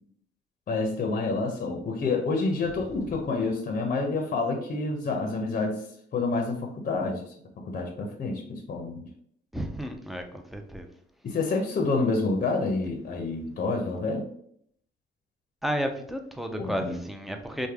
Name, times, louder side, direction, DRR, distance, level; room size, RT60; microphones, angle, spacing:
voice 1, 0.7-5.8 6.1-7.2 7.7-9.0 11.2-14.3 16.6-17.0, left 3 dB, 45° left, 3 dB, 0.6 m, -28 dB
voice 2, 9.5-10.9 15.6-17.7, equal, ahead, 5 dB, 0.4 m, -32 dB
3.2 x 2.2 x 3.4 m, 0.68 s
cardioid pair, 90°, 20 cm